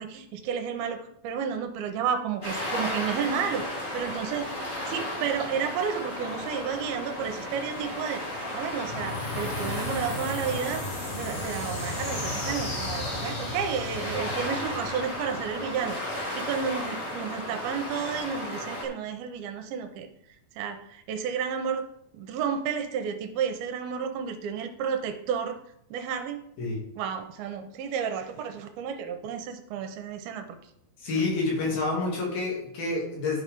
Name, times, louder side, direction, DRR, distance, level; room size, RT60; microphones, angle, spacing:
voice 1, 0.0-4.5 4.9-8.2 8.5-10.8 11.1-16.0 16.3-20.1 20.6-21.9 22.1-25.6 25.9-26.4 27.0-30.5 31.2-31.3, right 7 dB, 80° right, 7 dB, 2.5 m, -31 dB
sound 1, 2.4-18.9, left 1 dB, 25° left, 1.9 m, -34 dB
sound 2, 8.8-15.7, left 2 dB, 50° left, 4.3 m, -36 dB
voice 2, 31.0-33.4, left 3 dB, 70° left, -3 dB, 4.3 m, -28 dB
11.0 x 4.8 x 5.3 m, 0.75 s
omnidirectional pair, 4.5 m